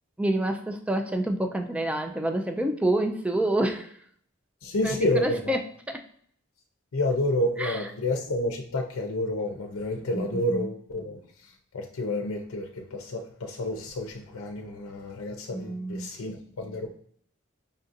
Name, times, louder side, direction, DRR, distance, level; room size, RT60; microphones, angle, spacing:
voice 1, 0.2-3.9 4.8-5.0 5.2-5.6 5.9-6.0 7.6-7.9 10.1-10.7 15.5-16.1, right 1 dB, 5° right, 4 dB, 0.4 m, -28 dB
voice 2, 4.6-5.6 6.9-16.9, left 1 dB, 85° left, 2 dB, 0.5 m, -30 dB
5.2 x 2.5 x 2.6 m, 0.63 s
head